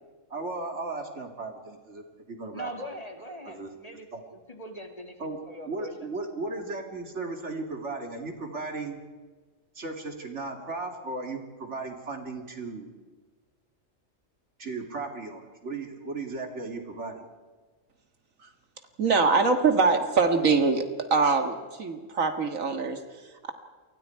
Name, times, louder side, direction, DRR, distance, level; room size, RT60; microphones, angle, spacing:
voice 1, 0.3-2.9 3.4-3.7 4.1-4.2 5.2-9.0 9.7-12.9 14.6-17.3, right 3 dB, 60° right, 3 dB, 2.9 m, -36 dB
voice 2, 2.5-4.1 4.5-5.9, right 1 dB, 30° left, 4 dB, 2.4 m, -41 dB
voice 3, 19.0-20.8 21.1-23.5, right 4 dB, 80° right, 6 dB, 2.1 m, -23 dB
29.5 x 23.5 x 4.6 m, 1.4 s
omnidirectional pair, 1.4 m